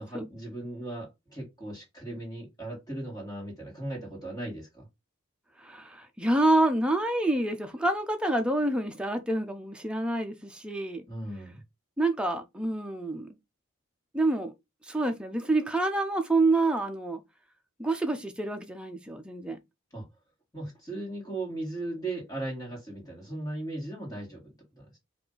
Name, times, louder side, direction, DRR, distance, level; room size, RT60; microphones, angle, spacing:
voice 1, 0.0-4.9 11.1-11.6 19.9-20.1 20.5-25.0, right 2 dB, 15° left, 1.8 m, -37 dB
voice 2, 5.6-11.0 12.0-13.3 14.1-14.5 14.8-17.2 17.8-19.6, right 2 dB, 5° right, 0.6 m, -27 dB
4.9 x 2.6 x 3.8 m
head